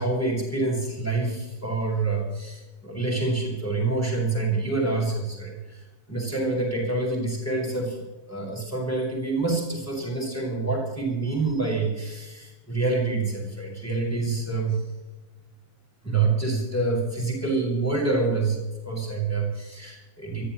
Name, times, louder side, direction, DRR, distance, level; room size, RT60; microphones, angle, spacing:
voice 1, 0.0-14.8 16.0-20.4, right 3 dB, 5° left, -2 dB, 6.7 m, -27 dB
25.0 x 15.0 x 3.3 m, 1.1 s
omnidirectional pair, 2.0 m